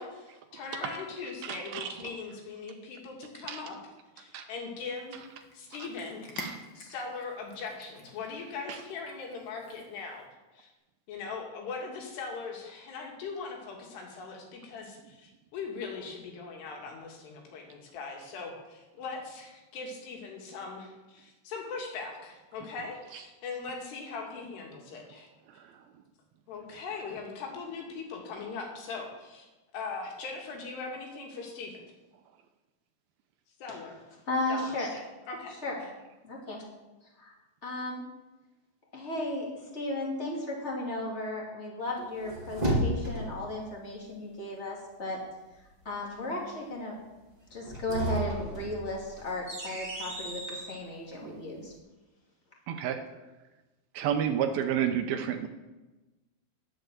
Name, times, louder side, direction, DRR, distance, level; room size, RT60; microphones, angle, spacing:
voice 1, 0.0-3.8 4.2-5.2 5.5-10.2 10.5-10.7 11.1-25.3 26.5-29.5 29.7-31.8 33.6-34.0 34.5-34.7 35.3-35.5, left 4 dB, 80° left, 0 dB, 4.2 m, -40 dB
voice 2, 1.4-1.9 3.5-3.6 4.3-4.5 6.4-6.6 8.7-8.8 23.1-23.2 25.5-25.8 52.7-53.0 53.9-55.5, right 9 dB, 80° right, 6 dB, 2.4 m, -31 dB
Cat, 5.0-10.3, left 2 dB, 55° left, 1.3 m, -48 dB
voice 3, 34.3-35.0 35.6-35.8 36.2-36.6 37.2-37.3 37.6-38.0 38.9-39.5 39.7-45.2 45.8-46.9 47.5-51.7, left 1 dB, 20° left, -2 dB, 1.9 m, -35 dB
sound 1, 42.0-43.5 47.5-50.8, equal, 20° right, 1.0 m, -33 dB
10.5 x 7.9 x 7.6 m, 1.1 s
omnidirectional pair, 4.7 m